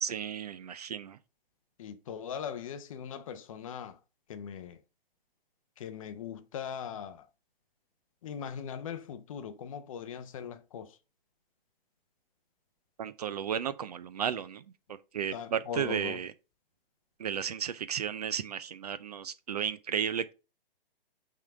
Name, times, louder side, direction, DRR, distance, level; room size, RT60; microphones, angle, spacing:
voice 1, 0.0-1.2 13.0-14.6 14.9-16.3 17.2-20.3, right 8 dB, 45° right, 0.4 m, -34 dB
voice 2, 1.8-4.0 4.3-4.8 5.8-7.3 8.2-11.0 15.3-16.2, left 8 dB, 35° left, 0.6 m, -40 dB
5.6 x 3.7 x 4.6 m
hypercardioid pair, 145°, 29 cm